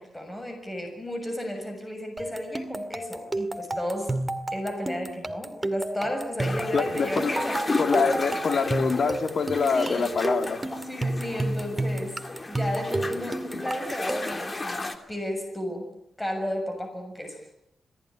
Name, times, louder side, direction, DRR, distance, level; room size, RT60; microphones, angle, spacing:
voice 1, 0.0-4.2 4.5-7.6 9.7-10.1 10.8-12.2 12.5-15.9 16.2-17.4, left 1 dB, 10° left, 4 dB, 6.8 m, -33 dB
sound 1, 2.2-14.5, right 2 dB, 20° right, 2.0 m, -32 dB
sound 2, 6.4-15.0, left 2 dB, 30° left, 2.9 m, -34 dB
voice 2, 6.7-7.3 7.8-10.6, left 5 dB, 60° left, 7 dB, 2.8 m, -25 dB
27.0 x 18.0 x 9.9 m, 0.80 s
cardioid pair, 100°, 0 cm